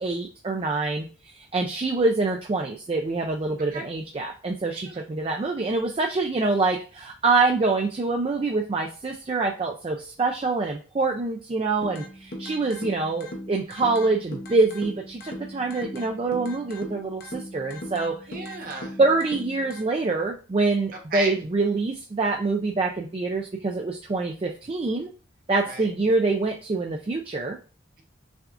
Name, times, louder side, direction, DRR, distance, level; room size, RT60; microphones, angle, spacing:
voice 1, 0.0-18.2 19.0-25.1 25.5-27.6, right 3 dB, 30° right, 2 dB, 0.3 m, -25 dB
sound 1, 11.8-19.8, equal, 50° left, 0.7 m, -39 dB
voice 2, 18.3-19.0 20.9-21.4 25.6-25.9, right 3 dB, 45° right, 1 dB, 1.0 m, -34 dB
5.9 x 2.4 x 2.5 m, 0.36 s
head